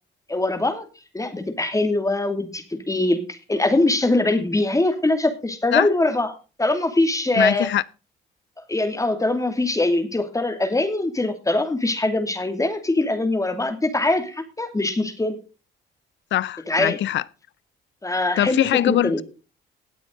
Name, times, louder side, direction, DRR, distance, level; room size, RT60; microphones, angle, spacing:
voice 1, 0.3-0.8 1.1-6.3 6.6-7.7 8.7-15.4 16.7-17.0 18.0-19.2, left 2 dB, 15° left, 2.6 m, -22 dB
voice 2, 7.3-7.8 16.3-17.2 18.4-19.2, left 12 dB, 70° left, 0.6 m, -22 dB
17.5 x 8.4 x 3.9 m
cardioid pair, 90°, 20 cm